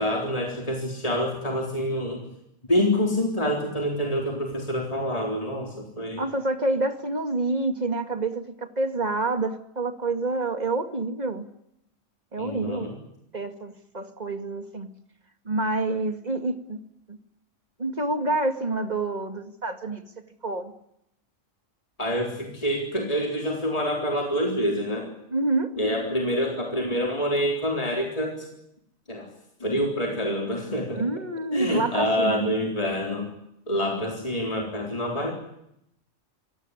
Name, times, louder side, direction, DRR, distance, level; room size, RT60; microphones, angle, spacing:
voice 1, 0.0-2.3 2.7-6.2 12.4-13.0 22.0-25.1 25.8-28.5 29.1-29.3 29.6-31.1 31.5-33.3 33.7-35.3, equal, 25° left, 1 dB, 4.0 m, -26 dB
voice 2, 6.2-11.5 12.3-12.9 13.3-14.9 15.5-16.8 17.1-17.2 17.8-20.0 20.4-20.7 25.3-25.7 31.0-32.5, right 2 dB, 30° right, 8 dB, 2.2 m, -27 dB
25.5 x 18.0 x 9.9 m, 0.78 s
omnidirectional pair, 1.4 m